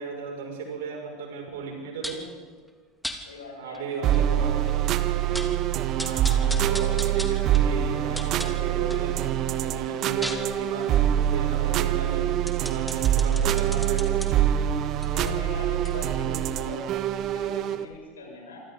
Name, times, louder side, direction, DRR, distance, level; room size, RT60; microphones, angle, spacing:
voice 1, 0.0-2.2 3.5-5.4 5.9-9.2 9.6-11.0 11.3-12.3 12.6-14.3, right 4 dB, 65° right, 0 dB, 6.2 m, -36 dB
sound 1, 2.0-2.3 3.0-3.2 3.7-3.8 4.1-4.2 4.7-4.8 5.1-5.6 6.0-9.1 9.5-14.3 14.9-17.6 17.9-18.0, equal, ahead, 2.8 m, -38 dB
voice 2, 3.2-4.3 6.2-6.6 15.1-16.9 17.1-18.6, left 3 dB, 80° left, -1 dB, 6.8 m, -41 dB
sound 2, 4.0-17.9, right 11 dB, 45° right, 1.2 m, -25 dB
27.5 x 25.0 x 4.0 m, 1.5 s
figure-of-eight pair, 75°, 0 cm